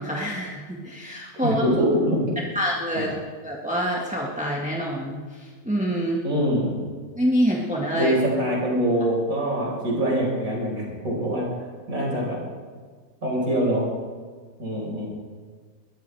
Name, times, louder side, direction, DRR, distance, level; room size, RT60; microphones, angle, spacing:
voice 1, 0.0-1.6 2.5-3.1 3.4-6.2 7.1-8.1, equal, 5° right, -3 dB, 1.5 m, -26 dB
voice 2, 1.4-2.3 2.9-3.1 6.2-6.8 7.9-11.5 11.9-12.4 13.2-13.9 14.6-15.1, equal, 55° right, -4 dB, 5.4 m, -24 dB
21.5 x 14.5 x 3.4 m, 1.5 s
omnidirectional pair, 1.7 m